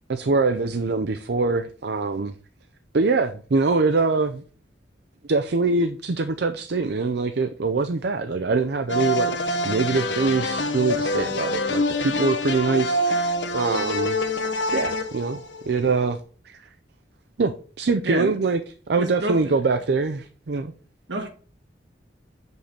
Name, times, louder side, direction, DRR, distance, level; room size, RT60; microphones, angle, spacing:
voice 1, 0.1-2.3 2.9-4.4 5.2-14.2 14.7-16.2 16.5-16.6 17.4-18.6 18.9-20.7, right 3 dB, 60° right, 0.5 m, -24 dB
sound 1, 8.9-15.9, left 1 dB, 75° left, 1.1 m, -26 dB
voice 2, 19.0-19.5 21.1-21.3, right 2 dB, 75° right, 1.7 m, -28 dB
6.7 x 5.5 x 5.7 m
head